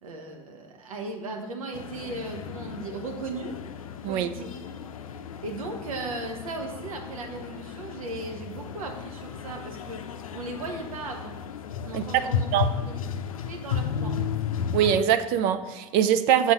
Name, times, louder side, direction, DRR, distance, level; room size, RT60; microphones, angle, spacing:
voice 1, 0.0-3.6 4.1-4.5 5.4-11.4 11.8-13.0 13.4-14.2, right 2 dB, 80° right, 3 dB, 1.1 m, -37 dB
sound 1, 1.7-15.0, left 7 dB, 80° left, 0.5 m, -34 dB
voice 2, 11.9-12.7 14.7-16.5, right 10 dB, 55° right, 11 dB, 0.5 m, -23 dB
7.0 x 4.0 x 6.1 m, 1.2 s
hypercardioid pair, 75°, 17 cm